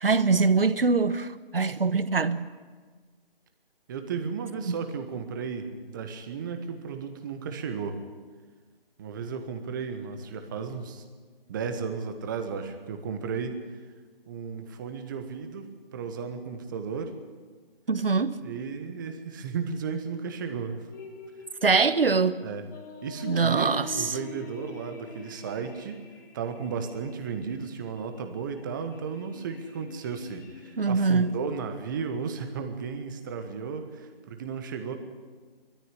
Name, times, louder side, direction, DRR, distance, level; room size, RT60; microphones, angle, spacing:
voice 1, 0.0-2.5 4.7-4.8 17.9-18.4 21.6-22.4 23.3-23.9 30.8-31.4, right 4 dB, 70° right, 1.2 m, -23 dB
voice 2, 3.9-8.0 9.0-11.0 11.5-13.6 14.3-17.1 18.4-20.9 22.4-22.7 23.0-26.0 26.3-34.9, right 6 dB, 20° right, 1.3 m, -34 dB
sound 1, 20.9-31.4, left 6 dB, 20° left, 1.5 m, -46 dB
20.5 x 14.0 x 9.9 m
figure-of-eight pair, 155°, 29 cm